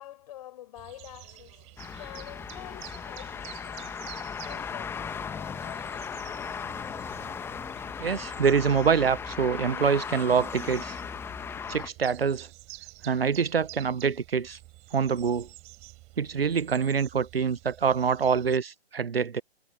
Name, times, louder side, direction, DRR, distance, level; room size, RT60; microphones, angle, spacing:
voice 1, 0.0-4.0 4.4-6.5, left 13 dB, 35° left, 6.1 m, -48 dB
sound 1, 0.8-18.6, right 21 dB, 20° right, 4.4 m, -49 dB
sound 2, 1.8-11.9, left 6 dB, 5° left, 1.6 m, -37 dB
voice 2, 8.0-11.0 11.7-12.5 13.0-14.6 14.9-15.5 16.2-19.4, right 6 dB, 65° right, 1.1 m, -25 dB
figure-of-eight pair, 130°, 32 cm